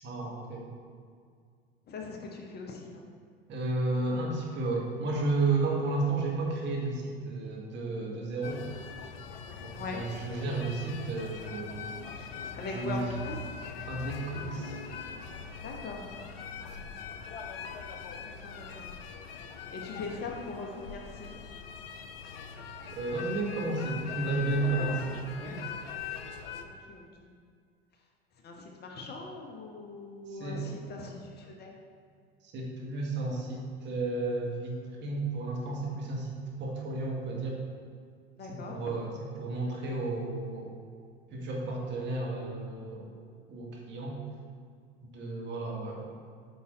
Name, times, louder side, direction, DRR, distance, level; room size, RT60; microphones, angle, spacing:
voice 1, 0.0-0.7 3.5-8.6 9.6-11.9 12.1-12.2 12.7-13.0 13.9-14.8 23.0-25.0 25.4-25.6 30.3-30.6 32.4-36.3 36.6-37.6 38.5-40.7 41.3-43.1 43.5-44.2 45.0-46.1, right 3 dB, 35° right, -1 dB, 1.8 m, -32 dB
voice 2, 1.9-3.1 9.8-10.0 12.6-13.6 15.6-16.2 18.2-18.9 19.7-21.3 24.6-25.0 25.4-25.8 26.6-27.3 28.4-31.8 38.4-38.9, left 3 dB, 30° left, 1 dB, 1.1 m, -41 dB
sound 1, 8.4-26.7, left 7 dB, 65° left, 0.7 m, -42 dB
8.3 x 5.8 x 3.8 m, 2.1 s
figure-of-eight pair, 80°, 31 cm